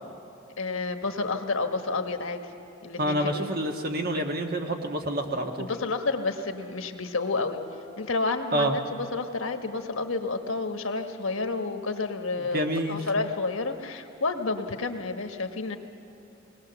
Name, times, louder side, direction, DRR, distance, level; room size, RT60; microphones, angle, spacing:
voice 1, 0.6-2.4 2.8-3.5 5.6-7.6 8.0-15.8, left 3 dB, 85° left, 6 dB, 1.3 m, -30 dB
voice 2, 3.0-5.7 8.5-8.8 12.4-13.0, right 1 dB, 50° right, 3 dB, 1.5 m, -28 dB
21.0 x 18.5 x 6.9 m, 3.0 s
head